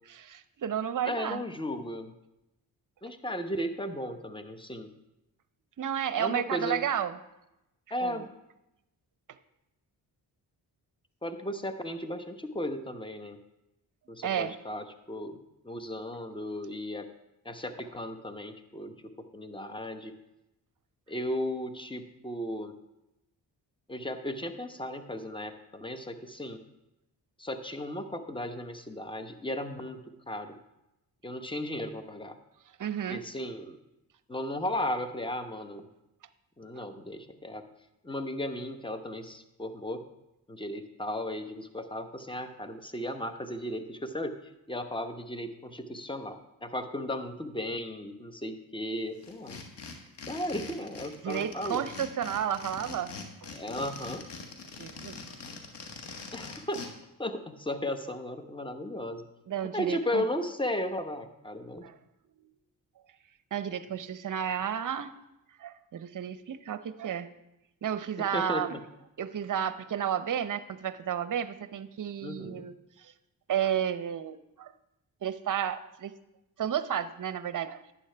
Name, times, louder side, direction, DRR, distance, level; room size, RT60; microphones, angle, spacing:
voice 1, 0.1-1.4 5.8-7.1 8.0-8.2 14.2-14.5 32.8-33.2 36.8-36.9 51.2-53.1 53.4-53.5 54.8-55.2 59.5-60.2 61.8-61.9 62.4-62.5 63.5-65.1 65.6-67.3 67.8-68.8 69.2-73.1 73.5-74.7 75.2-76.1 76.6-77.8, right 9 dB, 45° right, 13 dB, 0.7 m, -32 dB
voice 2, 1.0-2.2 3.0-4.9 6.2-6.8 7.9-8.3 11.2-13.4 14.1-15.4 15.6-17.1 17.4-20.2 21.1-22.7 23.9-26.6 27.4-30.6 31.2-32.4 33.1-33.8 34.3-35.9 36.6-37.6 38.0-40.1 40.5-49.7 50.2-51.9 53.5-54.2 56.3-59.3 59.7-61.9 68.2-68.8 72.2-72.7, left 1 dB, 10° left, 8 dB, 1.0 m, -35 dB
sound 1, 49.2-56.9, left 4 dB, 70° left, 1.5 m, -43 dB
11.5 x 8.9 x 3.4 m, 0.91 s
supercardioid pair, 55°, 43 cm